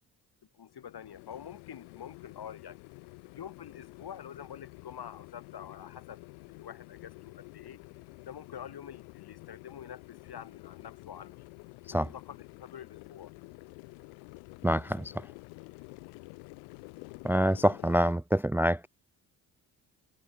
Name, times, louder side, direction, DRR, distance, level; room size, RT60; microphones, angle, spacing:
voice 1, 0.5-2.8 3.3-6.2 6.5-7.8 8.2-11.4 12.1-13.3, left 8 dB, 55° left, 3.0 m, -46 dB
sound 1, 0.7-18.1, left 30 dB, 85° left, 1.7 m, -50 dB
voice 2, 14.6-15.3 17.2-18.9, equal, 5° right, 0.6 m, -26 dB
hypercardioid pair, 40°, 45 cm